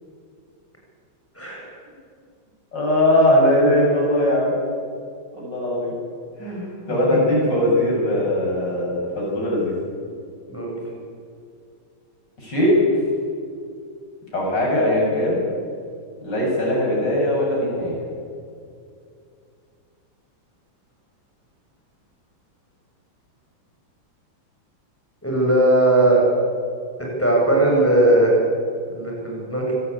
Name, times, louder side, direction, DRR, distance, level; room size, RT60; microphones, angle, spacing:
voice 1, 1.3-1.7 7.1-7.6 10.5-10.8 25.2-26.2 27.2-28.3 28.9-29.7, right 1 dB, 5° left, -2 dB, 8.0 m, -18 dB
voice 2, 2.7-4.5 5.3-5.9 6.4-9.8 12.4-12.8 14.3-15.4 16.2-18.0, left 1 dB, 55° left, -3 dB, 8.0 m, -20 dB
25.0 x 18.5 x 8.6 m, 2.3 s
omnidirectional pair, 2.3 m